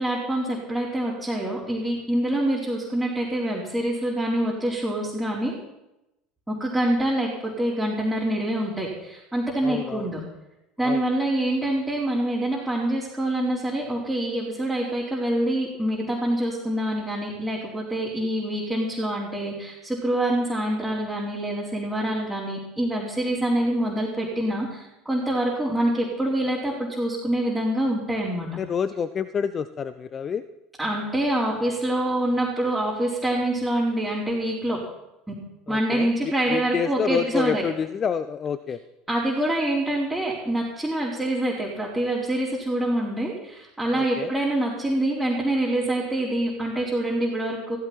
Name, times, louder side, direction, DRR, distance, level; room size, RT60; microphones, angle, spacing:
voice 1, 0.0-5.5 6.5-10.2 10.8-28.5 30.8-34.8 35.7-37.6 39.1-47.8, right 1 dB, 5° right, -6 dB, 4.4 m, -26 dB
voice 2, 9.6-10.1 10.8-11.0 28.6-30.4 35.7-38.8 43.9-44.3, left 7 dB, 35° left, 13 dB, 0.6 m, -28 dB
15.5 x 15.0 x 4.5 m, 0.93 s
hypercardioid pair, 75°, 0 cm